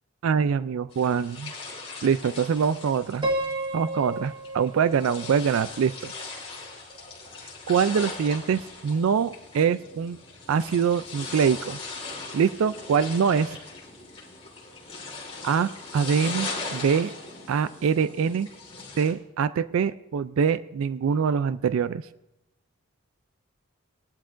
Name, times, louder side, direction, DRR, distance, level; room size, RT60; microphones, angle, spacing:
voice 1, 0.2-1.5 2.0-3.3 3.7-6.1 7.7-10.2 10.5-11.8 12.3-13.6 15.4-17.1 17.5-18.5 19.0-22.0, right 6 dB, 65° right, 15 dB, 0.3 m, -24 dB
sound 1, 0.9-19.1, left 3 dB, 25° left, 3.0 m, -39 dB
Piano, 3.2-6.2, right 1 dB, 20° right, 0.7 m, -32 dB
20.5 x 11.5 x 2.5 m, 0.92 s
head